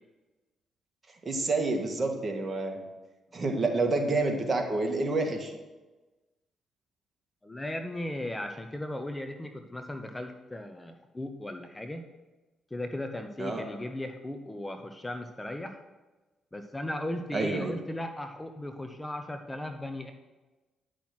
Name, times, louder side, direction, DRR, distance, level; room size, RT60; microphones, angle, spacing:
voice 1, 1.2-2.9 3.3-5.5 13.4-13.6 17.3-17.7, right 3 dB, 35° right, 2 dB, 2.0 m, -28 dB
voice 2, 7.4-12.0 12.7-15.8 16.5-20.1, left 1 dB, 15° left, 6 dB, 1.0 m, -37 dB
10.5 x 6.2 x 6.0 m, 1.2 s
cardioid pair, 75°, 0 cm